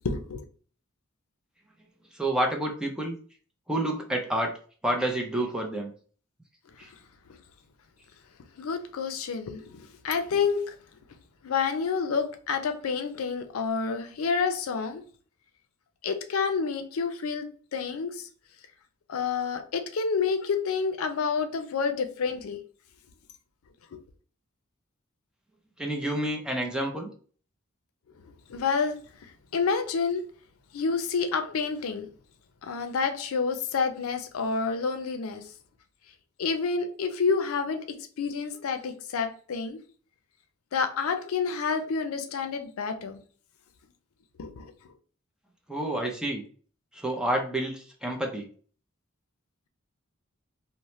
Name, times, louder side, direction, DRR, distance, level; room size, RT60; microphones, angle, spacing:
voice 1, 0.0-0.4 6.9-7.0 7.3-7.4 8.6-10.8 11.4-15.0 16.0-17.5 17.7-18.3 19.1-22.6 23.9-24.0 28.2-30.2 30.7-32.1 32.6-35.4 36.4-39.8 40.7-43.2 44.4-44.7, left 5 dB, 85° left, 0.5 m, -29 dB
voice 2, 2.1-3.1 3.7-4.5 4.8-5.9 6.8-6.9 25.8-27.1 45.7-46.4 46.9-48.5, right 1 dB, 5° right, 0.5 m, -29 dB
2.8 x 2.0 x 3.0 m
head